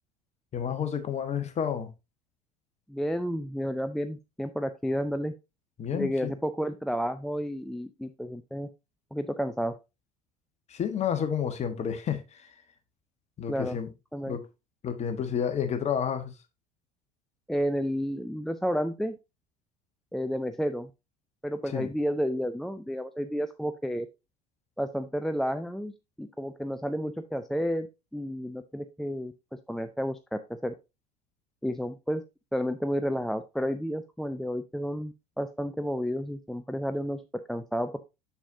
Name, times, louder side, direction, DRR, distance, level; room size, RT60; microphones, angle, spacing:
voice 1, 0.5-1.9 5.8-6.3 10.7-12.5 13.4-13.9 14.3-14.4 14.8-16.3 21.7-21.9, left 8 dB, 35° left, 1.4 m, -30 dB
voice 2, 2.9-5.3 5.9-8.7 9.1-9.8 13.5-13.8 14.1-14.4 17.5-19.2 20.1-20.9 21.4-24.1 24.8-25.9 26.2-27.9 28.1-29.3 29.7-30.7 31.6-32.2 32.5-38.0, equal, ahead, 0.4 m, -31 dB
7.0 x 6.9 x 2.6 m
hypercardioid pair, 75°, 20 cm